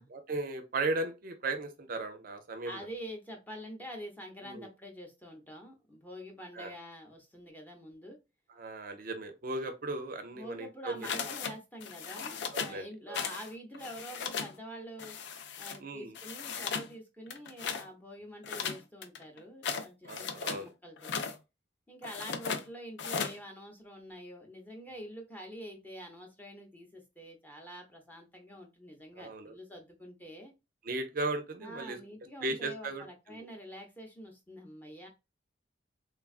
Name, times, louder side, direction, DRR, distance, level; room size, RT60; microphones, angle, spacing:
voice 1, 0.1-2.9 4.4-4.7 6.6-6.7 8.6-11.1 12.5-13.2 15.8-16.1 20.1-20.7 29.1-29.5 30.8-32.0 32.4-33.0 33.3-33.5, right 2 dB, 50° right, 0.5 m, -36 dB
voice 2, 2.7-8.2 10.3-15.2 15.6-21.3 21.9-30.5 31.6-35.1, equal, 10° left, 0.6 m, -46 dB
sound 1, 11.0-11.5 11.8-12.8 13.1-13.5 13.7-14.5 15.0-15.8 16.2-16.9 17.3-17.9 18.4-20.6 21.0-21.4 22.0-22.6 23.0-23.4, left 6 dB, 65° left, 0.4 m, -36 dB
3.2 x 2.3 x 2.4 m
head